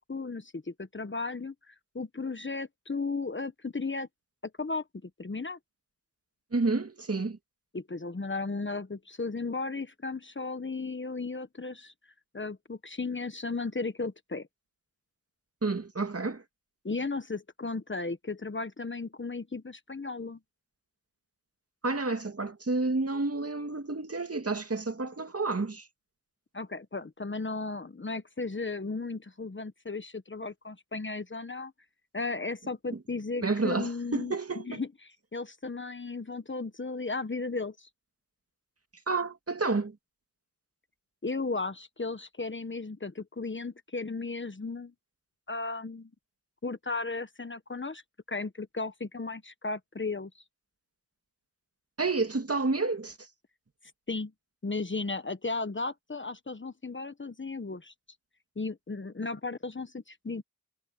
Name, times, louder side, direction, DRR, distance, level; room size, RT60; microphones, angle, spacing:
voice 1, 0.1-4.1 4.4-5.6 7.7-11.9 12.3-14.5 16.8-20.4 26.5-31.7 32.1-37.9 41.2-44.9 45.5-46.1 46.6-48.0 48.3-50.4 54.1-54.3 54.6-57.9 58.6-60.4, left 3 dB, 30° left, 1.3 m, -35 dB
voice 2, 6.5-7.4 15.6-16.4 21.8-25.8 33.4-34.8 39.1-39.9 52.0-53.1, right 3 dB, 40° right, 2.3 m, -30 dB
cardioid pair, 45°, 37 cm